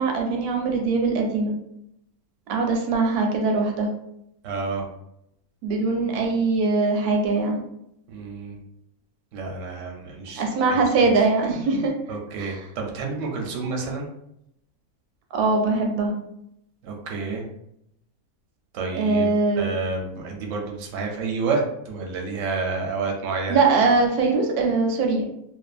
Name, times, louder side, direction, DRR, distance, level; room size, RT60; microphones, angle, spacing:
voice 1, 0.0-1.5 2.5-3.9 5.6-7.6 10.4-11.9 12.4-12.6 15.3-16.2 18.9-19.7 23.5-25.3, right 3 dB, 90° right, 2 dB, 1.1 m, -22 dB
voice 2, 4.4-4.9 8.1-8.6 9.3-10.4 12.1-14.1 16.8-17.4 18.7-19.3 19.6-23.6, right 4 dB, 65° right, 1 dB, 0.9 m, -29 dB
2.6 x 2.1 x 2.3 m, 0.77 s
omnidirectional pair, 1.6 m